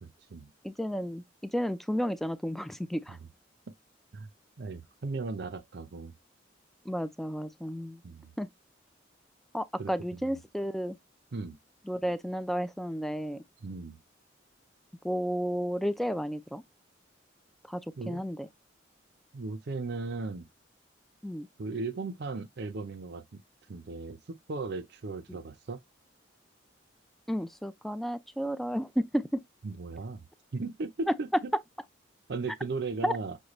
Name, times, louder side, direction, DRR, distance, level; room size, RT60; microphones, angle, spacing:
voice 1, 0.0-0.5 3.1-3.2 4.1-4.3 4.6-6.1 8.0-8.3 9.8-10.3 11.3-11.6 13.6-14.0 18.0-18.2 19.3-20.5 21.6-23.4 23.7-25.8 29.6-30.3 30.5-31.5 32.3-33.4, right 3 dB, 55° right, 0.5 m, -37 dB
voice 2, 0.6-3.2 6.9-8.0 8.4-8.5 9.5-11.0 11.9-13.4 15.0-16.6 17.7-18.5 21.2-21.5 27.3-29.4 31.1-31.2 33.0-33.2, equal, ahead, 0.3 m, -32 dB
6.4 x 2.2 x 3.0 m
head